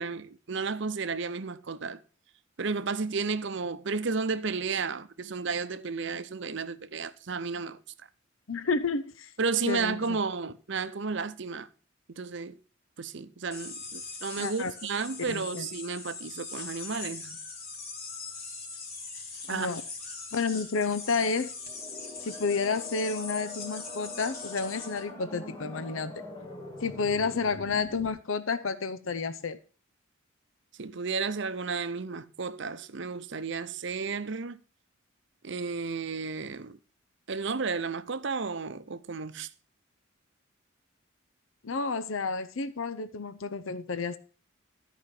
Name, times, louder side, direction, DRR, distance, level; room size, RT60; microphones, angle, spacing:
voice 1, 0.0-2.0 2.6-7.8 9.4-11.7 12.2-12.6 13.0-17.4 19.5-19.7 30.8-34.6 35.4-36.8 37.3-39.5, right 4 dB, 60° right, 0.7 m, -32 dB
voice 2, 8.5-9.3 9.7-10.0 14.4-14.7 15.3-15.7 19.5-19.8 20.3-21.5 22.2-26.2 26.8-29.6 41.6-44.2, left 4 dB, 75° left, 0.7 m, -30 dB
sound 1, 13.5-25.0, left 4 dB, 45° left, 2.5 m, -41 dB
sound 2, 21.6-28.1, left 2 dB, 20° left, 1.8 m, -44 dB
13.5 x 5.1 x 5.9 m
head